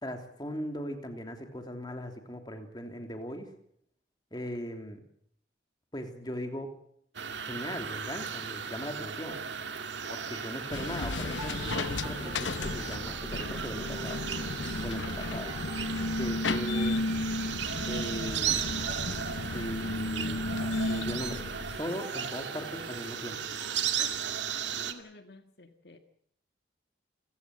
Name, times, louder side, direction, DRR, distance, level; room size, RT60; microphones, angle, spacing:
voice 1, 0.0-3.5 4.3-5.0 5.9-6.7 7.5-9.4 10.1-14.2 14.8-15.6 16.2-17.1 17.8-18.8 19.4-21.5 21.8-23.4, equal, 25° left, 5 dB, 3.1 m, -39 dB
sound 1, 7.1-24.9, right 7 dB, 80° right, 2.2 m, -36 dB
sound 2, 10.1-23.8, right 2 dB, 25° right, 4.3 m, -48 dB
sound 3, 10.7-21.8, left 2 dB, 85° left, 0.9 m, -33 dB
voice 2, 24.7-26.0, left 4 dB, 65° left, 7 dB, 1.7 m, -49 dB
29.0 x 16.5 x 7.8 m, 0.68 s
head